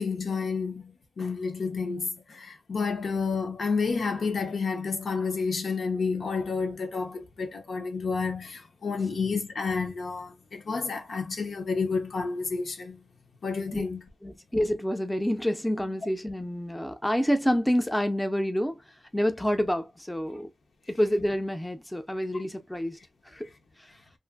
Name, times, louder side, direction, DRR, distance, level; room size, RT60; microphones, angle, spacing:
voice 1, 0.0-13.0 13.4-14.0, left 4 dB, 80° left, 0.7 m, -30 dB
voice 2, 14.2-18.8 19.1-20.5 20.9-23.0 23.3-23.5, equal, 10° left, 0.5 m, -28 dB
2.6 x 2.5 x 2.3 m
wide cardioid pair, 85°, 0 cm